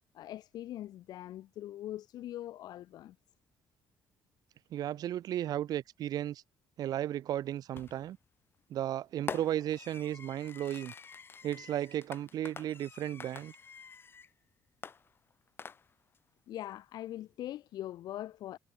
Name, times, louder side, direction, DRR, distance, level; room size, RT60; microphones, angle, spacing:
voice 1, 0.1-3.2 16.5-18.6, left 13 dB, 75° left, 3.6 m, -42 dB
voice 2, 4.7-6.4 6.8-8.2 8.7-10.9 11.4-13.5, right 12 dB, 65° right, 4.5 m, -34 dB
Fireworks, 7.8-8.2 9.3-14.3 14.8-16.2, left 6 dB, 30° left, 3.1 m, -46 dB
cardioid pair, 135°, 7 cm